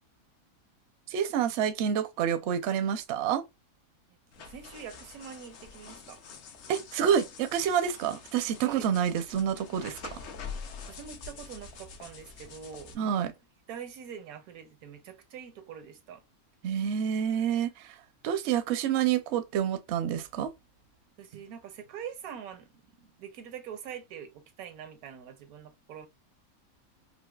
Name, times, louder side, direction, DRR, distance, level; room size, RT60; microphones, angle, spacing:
voice 1, 1.1-3.4 6.7-10.2 12.9-13.3 16.6-18.0 18.2-20.5, right 8 dB, 65° right, 0.7 m, -28 dB
sound 1, 4.3-12.9, left 5 dB, 60° left, 0.8 m, -45 dB
voice 2, 4.4-6.2 8.6-8.9 10.9-13.2 13.7-16.2 21.2-22.7 23.0-26.1, right 8 dB, 85° right, 1.1 m, -44 dB
3.9 x 2.4 x 2.2 m
omnidirectional pair, 1.5 m